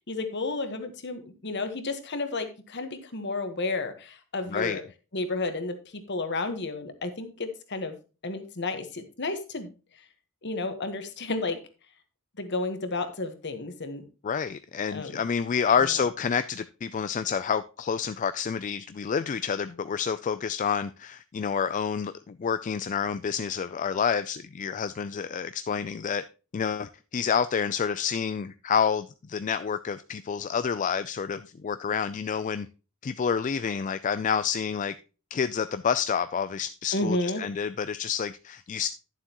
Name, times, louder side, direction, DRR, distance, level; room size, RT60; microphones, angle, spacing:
voice 1, 0.1-4.8 5.1-7.9 8.2-9.7 10.4-11.6 12.4-14.1 14.9-15.2 15.8-15.9 36.9-37.4, left 2 dB, 55° left, 1.3 m, -32 dB
voice 2, 4.5-4.8 14.2-26.2 26.5-32.7 33.0-34.9 35.3-38.9, left 7 dB, 35° left, 0.3 m, -28 dB
11.5 x 7.4 x 3.0 m
head